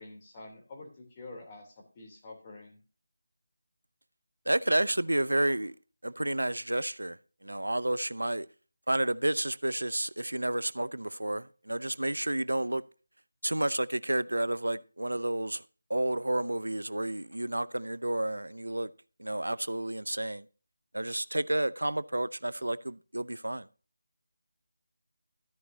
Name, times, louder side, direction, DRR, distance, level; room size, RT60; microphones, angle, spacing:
voice 1, 0.0-2.8, left 2 dB, 25° left, 3.3 m, -47 dB
voice 2, 4.5-5.7 6.0-7.2 7.4-8.5 8.9-12.8 13.4-15.6 15.9-18.9 19.2-20.4 20.9-23.7, right 1 dB, 85° right, 0.6 m, -30 dB
13.0 x 9.4 x 2.8 m
figure-of-eight pair, 165°, 0 cm